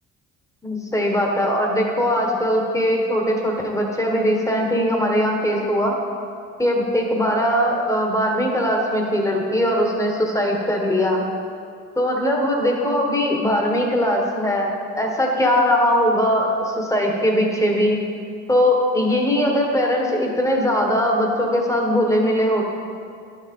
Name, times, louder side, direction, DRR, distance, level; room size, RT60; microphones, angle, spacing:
voice 1, 0.6-6.0 6.6-11.2 11.9-18.0 18.5-22.7, equal, 10° left, 0 dB, 1.5 m, -20 dB
11.5 x 6.5 x 3.8 m, 2.3 s
cardioid pair, 90°, 30 cm